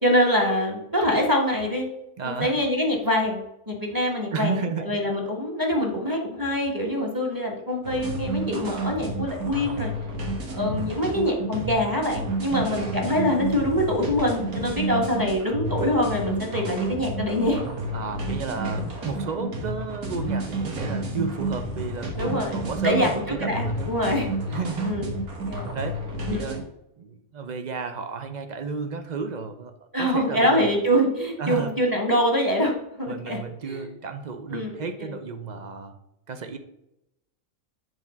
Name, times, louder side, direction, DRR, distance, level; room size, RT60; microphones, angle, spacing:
voice 1, 0.0-1.9 2.2-9.9 10.5-17.6 22.1-22.5 22.8-24.6 24.8-25.0 25.5-25.7 26.3-26.5 29.9-32.7 33.0-33.4 33.7-33.8 34.5-34.7 35.0-35.1, equal, 15° right, 0 dB, 1.4 m, -24 dB
voice 2, 2.2-2.5 4.3-5.0 12.5-12.7 17.9-23.9 24.5-25.0 25.7-26.0 26.3-26.7 27.0-29.7 30.0-30.8 31.4-31.7 33.1-36.0 36.3-36.6, right 5 dB, 45° right, 8 dB, 0.6 m, -32 dB
sound 1, 7.8-26.6, right 2 dB, 90° right, 1.8 m, -31 dB
8.0 x 3.6 x 5.7 m, 0.84 s
omnidirectional pair, 1.5 m